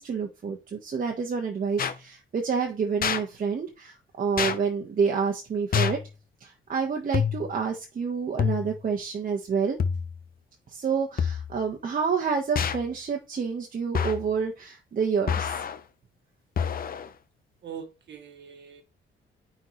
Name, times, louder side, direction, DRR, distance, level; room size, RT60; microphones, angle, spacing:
voice 1, 0.0-6.0 6.4-9.8 10.7-15.6, right 6 dB, 45° right, 1.3 m, -28 dB
sound 1, 1.8-2.0 3.0-3.2 4.4-4.6 5.7-6.1 7.1-7.6 8.4-8.8 9.8-10.2 11.2-11.6 12.6-12.9 13.9-14.3 15.3-15.8 16.6-17.1, left 7 dB, 45° left, 0.8 m, -27 dB
voice 2, 17.6-18.8, right 7 dB, 60° right, 1.6 m, -42 dB
9.3 x 4.3 x 3.1 m
cardioid pair, 90°, 20 cm